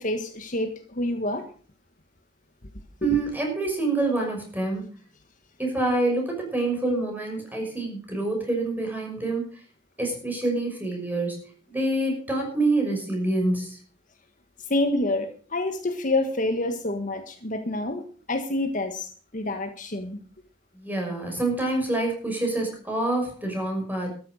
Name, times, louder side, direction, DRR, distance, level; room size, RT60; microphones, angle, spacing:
voice 1, 0.0-1.4 3.0-3.2 14.7-18.0 18.3-20.2, left 2 dB, 45° left, 7 dB, 1.5 m, -27 dB
voice 2, 3.0-4.9 5.6-9.5 10.0-13.8 20.8-24.1, right 2 dB, 10° right, 1 dB, 6.0 m, -26 dB
13.5 x 10.5 x 6.4 m, 0.42 s
head